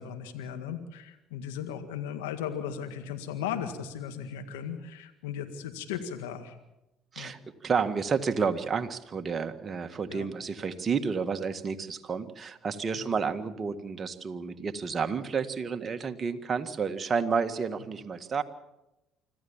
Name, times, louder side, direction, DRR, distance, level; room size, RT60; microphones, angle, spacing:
voice 1, 0.0-6.6 7.2-7.3 10.1-10.3 12.9-13.1, left 8 dB, 85° left, 7 dB, 1.8 m, -37 dB
voice 2, 7.1-18.4, right 5 dB, 35° right, 7 dB, 1.7 m, -30 dB
25.5 x 14.5 x 7.3 m, 0.95 s
hypercardioid pair, 65°, 0 cm